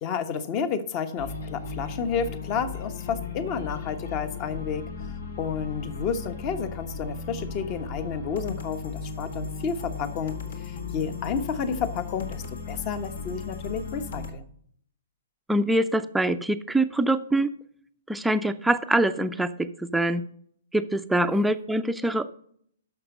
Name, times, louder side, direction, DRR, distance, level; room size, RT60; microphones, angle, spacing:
voice 1, 0.0-4.9 5.4-14.5, left 6 dB, 35° left, 11 dB, 1.1 m, -31 dB
sound 1, 1.2-14.3, left 5 dB, 65° left, 1.8 m, -36 dB
voice 2, 15.5-17.5 18.1-19.5 19.9-20.2 20.7-22.3, right 1 dB, 5° right, 10 dB, 0.6 m, -24 dB
12.5 x 5.9 x 5.3 m, 0.64 s
figure-of-eight pair, 120°, 0 cm